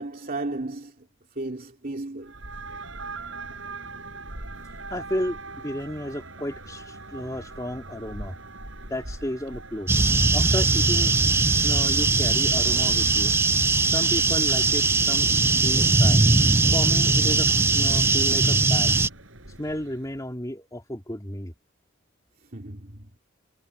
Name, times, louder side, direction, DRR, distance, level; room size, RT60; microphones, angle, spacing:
voice 1, 0.0-2.3 22.5-23.1, right 2 dB, 45° right, 2.8 m, -34 dB
sound 1, 2.2-20.1, right 3 dB, 65° right, 7.4 m, -43 dB
voice 2, 4.9-8.4 8.9-9.9 10.3-11.1 11.6-13.3 13.8-15.3 15.6-16.2 16.7-17.5 17.7-18.9 19.6-21.5, left 1 dB, 15° left, 2.8 m, -33 dB
sound 2, 9.9-19.1, right 3 dB, 10° right, 0.4 m, -20 dB
head